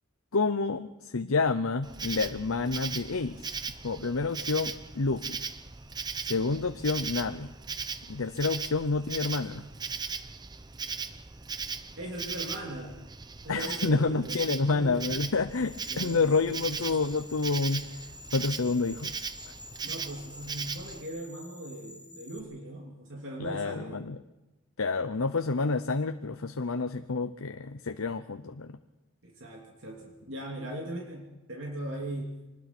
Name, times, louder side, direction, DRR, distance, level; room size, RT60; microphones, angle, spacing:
voice 1, 0.3-3.5 3.8-5.4 6.2-7.5 8.1-9.7 13.5-18.0 18.3-19.1 23.4-24.2 24.8-28.8, left 4 dB, 80° left, 8 dB, 0.8 m, -29 dB
Insect, 1.8-21.0, right 5 dB, 20° right, 0.8 m, -38 dB
voice 2, 12.0-13.0 13.4-14.4 14.6-15.4 15.9-16.3 16.5-17.0 19.8-24.0 29.2-32.4, right 1 dB, 60° right, -1 dB, 3.1 m, -39 dB
sound 1, 15.5-22.4, left 2 dB, 10° left, 3.6 m, -49 dB
25.0 x 20.0 x 6.1 m, 1.0 s
head